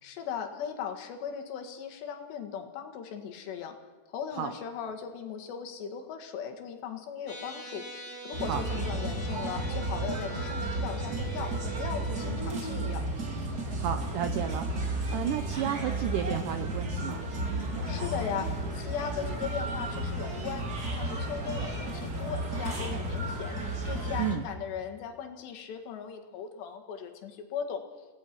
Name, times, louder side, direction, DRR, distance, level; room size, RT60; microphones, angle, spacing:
voice 1, 0.0-3.8 4.1-7.8 8.2-13.0 17.9-20.7 21.0-23.6 23.9-27.8, left 7 dB, 80° left, 5 dB, 3.9 m, -38 dB
sound 1, 7.3-12.4, right 3 dB, 15° left, 2.8 m, -43 dB
sound 2, 8.3-24.4, right 1 dB, 30° right, 2.1 m, -33 dB
voice 2, 13.7-17.3 24.2-24.5, right 10 dB, 80° right, 8 dB, 1.9 m, -32 dB
29.0 x 17.5 x 6.0 m, 1.4 s
omnidirectional pair, 4.9 m